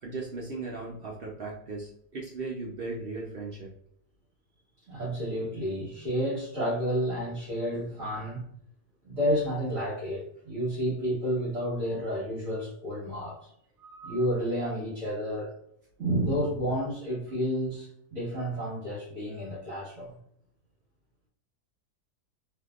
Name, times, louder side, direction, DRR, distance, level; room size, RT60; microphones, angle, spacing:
voice 1, 0.0-3.7, right 3 dB, 70° right, 0.5 m, -37 dB
voice 2, 4.9-8.4 9.0-13.5 13.8-15.5 16.0-20.2, equal, 55° right, 1.6 m, -30 dB
3.5 x 2.7 x 2.4 m
omnidirectional pair, 1.7 m